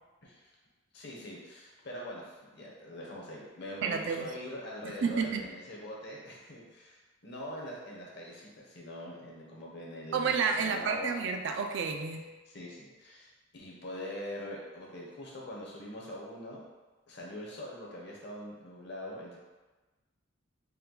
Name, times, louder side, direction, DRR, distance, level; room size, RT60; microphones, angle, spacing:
voice 1, 0.9-11.2 12.5-16.6 17.1-19.4, left 1 dB, 60° left, -3 dB, 0.9 m, -43 dB
voice 2, 3.8-4.2 4.8-5.4 10.1-12.3, right 5 dB, 60° right, 5 dB, 0.4 m, -30 dB
4.4 x 2.2 x 3.9 m, 1.2 s
head